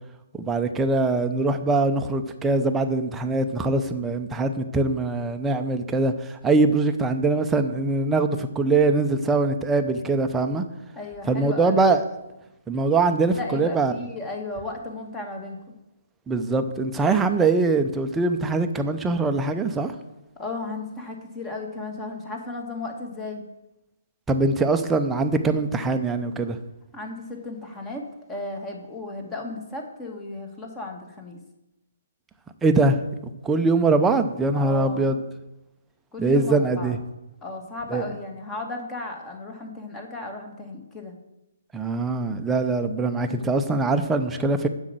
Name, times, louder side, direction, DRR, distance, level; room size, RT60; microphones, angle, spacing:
voice 1, 0.4-10.6 11.3-12.0 12.7-13.9 16.3-19.9 24.3-26.6 32.6-33.0 33.4-35.2 36.2-37.0 37.9-38.0 41.7-44.7, right 3 dB, 10° right, 6 dB, 0.7 m, -22 dB
voice 2, 10.9-11.9 13.3-15.6 20.4-23.4 26.9-31.4 34.5-35.1 36.1-36.9 37.4-41.1, left 2 dB, 15° left, 2 dB, 1.7 m, -35 dB
7.5 x 6.3 x 7.6 m, 0.94 s
hypercardioid pair, 145°, 0 cm